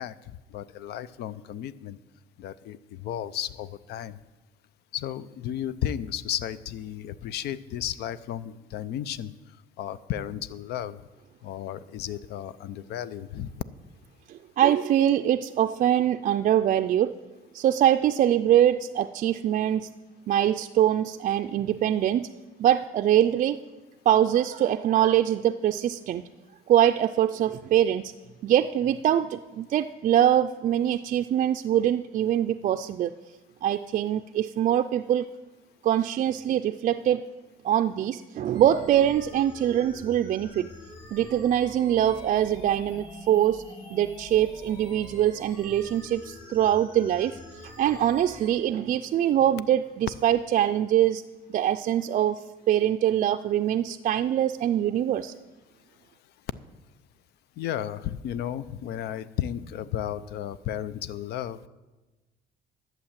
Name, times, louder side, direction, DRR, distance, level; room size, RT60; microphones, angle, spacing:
voice 1, 0.0-2.0 2.4-4.2 4.9-9.3 9.8-11.0 11.4-13.5 57.6-61.7, left 10 dB, 75° left, 17 dB, 0.5 m, -34 dB
voice 2, 14.3-17.1 17.5-19.9 20.3-22.3 22.6-23.6 24.1-26.2 26.7-28.1 28.4-33.1 33.6-35.3 35.8-37.2 37.6-40.7 41.1-43.6 43.9-51.2 51.5-55.3, right 11 dB, 50° right, 7 dB, 0.4 m, -23 dB
sound 1, 38.5-48.5, left 2 dB, 30° left, 2.9 m, -45 dB
11.5 x 7.4 x 7.3 m, 1.2 s
cardioid pair, 110°, 17 cm